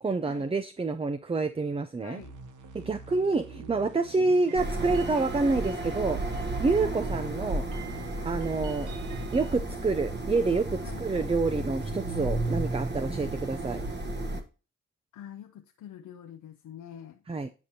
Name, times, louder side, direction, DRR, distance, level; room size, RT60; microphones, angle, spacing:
voice 1, 0.0-2.2 2.7-6.2 6.6-7.6 8.2-8.9 9.3-13.8 17.3-17.5, right 3 dB, 20° right, 0.5 m, -28 dB
voice 2, 2.0-2.4 3.0-3.3 4.1-4.4 6.8-7.0 8.2-8.5 10.8-11.0 15.1-17.2, left 10 dB, 75° left, 0.6 m, -46 dB
sound 1, 2.2-9.6, right 5 dB, 70° right, 1.2 m, -46 dB
sound 2, 4.6-14.4, right 2 dB, 35° right, 1.4 m, -33 dB
9.5 x 5.0 x 2.8 m
cardioid pair, 55°, 31 cm